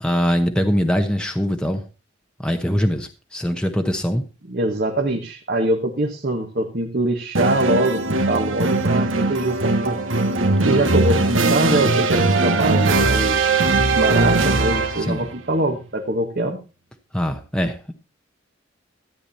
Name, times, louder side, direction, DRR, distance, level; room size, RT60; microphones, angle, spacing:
voice 1, 0.0-1.8 2.4-4.2 15.1-15.3 17.1-17.9, equal, 5° left, 4 dB, 0.9 m, -22 dB
voice 2, 4.5-10.0 10.6-16.6, right 1 dB, 50° right, 1 dB, 1.5 m, -23 dB
sound 1, 7.3-15.2, right 3 dB, 75° right, 1.4 m, -19 dB
13.5 x 8.8 x 4.2 m, 0.31 s
head